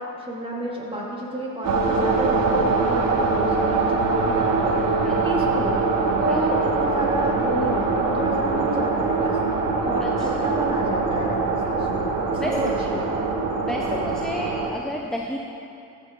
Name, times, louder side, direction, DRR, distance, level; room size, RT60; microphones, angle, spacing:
voice 1, 0.0-5.8 6.2-9.4 9.8-13.4 13.7-14.3, right 1 dB, 15° right, -4 dB, 2.6 m, -30 dB
sound 1, 1.6-14.7, right 3 dB, 75° right, 1.2 m, -23 dB
voice 2, 5.0-5.4 6.2-6.6 10.0-10.5 11.6-11.8 12.4-12.6 13.7-15.4, left 1 dB, ahead, 1 dB, 0.6 m, -32 dB
14.5 x 6.4 x 3.9 m, 2.7 s
supercardioid pair, 70°, 34 cm